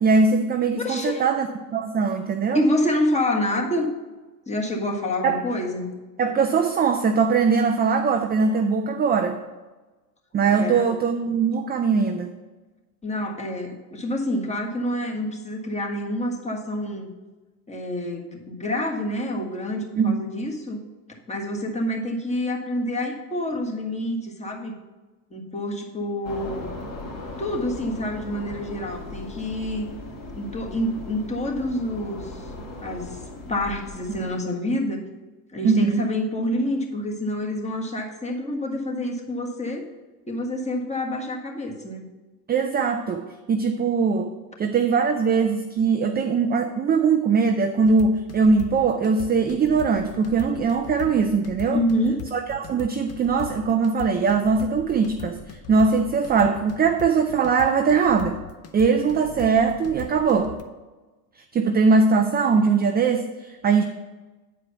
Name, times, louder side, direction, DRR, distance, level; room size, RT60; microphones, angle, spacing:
voice 1, 0.0-1.5 1.7-2.6 5.2-5.4 6.2-9.4 10.3-12.3 20.0-20.2 35.6-36.1 42.5-44.3 44.6-51.8 52.3-55.4 55.7-58.4 58.7-60.5 61.5-63.8, right 5 dB, 20° right, 5 dB, 0.5 m, -21 dB
voice 2, 0.8-1.2 2.5-3.9 4.5-5.9 10.5-11.0 13.0-17.1 17.7-20.8 21.1-24.7 25.3-26.7 27.4-29.9 30.3-32.5 32.8-35.0 35.5-39.9 40.3-42.1 51.7-52.2, left 1 dB, 15° left, 0 dB, 1.6 m, -27 dB
sound 1, 26.2-34.3, left 2 dB, 50° left, 2.7 m, -38 dB
sound 2, 47.8-60.6, left 9 dB, 30° left, 0.8 m, -40 dB
8.6 x 4.9 x 5.7 m, 1.2 s
hypercardioid pair, 80°, 48 cm